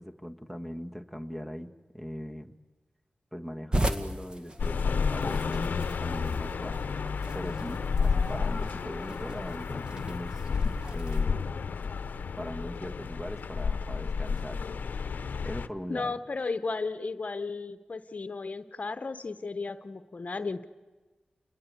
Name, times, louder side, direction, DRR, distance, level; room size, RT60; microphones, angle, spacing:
voice 1, 0.0-2.6 3.3-6.8 7.3-10.4 10.9-11.5 11.9-12.1 12.4-14.6 15.4-16.2, equal, 10° right, 5 dB, 1.6 m, -40 dB
sound 1, 3.7-11.3, right 1 dB, 30° right, 1.9 m, -37 dB
sound 2, 4.6-15.7, left 5 dB, 85° left, 0.8 m, -31 dB
voice 2, 15.9-20.7, left 4 dB, 55° left, 11 dB, 1.0 m, -34 dB
29.0 x 20.5 x 8.4 m, 1.3 s
cardioid pair, 55°, 3 cm